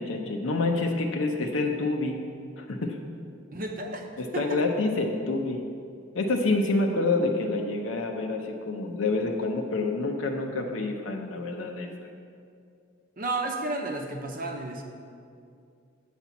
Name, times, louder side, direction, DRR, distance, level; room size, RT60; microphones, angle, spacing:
voice 1, 0.0-2.2 2.6-3.0 4.2-5.6 6.1-11.9, left 3 dB, 75° left, 2 dB, 0.7 m, -27 dB
voice 2, 3.5-4.1 4.3-4.6 13.2-14.8, right 2 dB, 45° right, 3 dB, 0.8 m, -32 dB
8.0 x 4.3 x 7.1 m, 2.3 s
head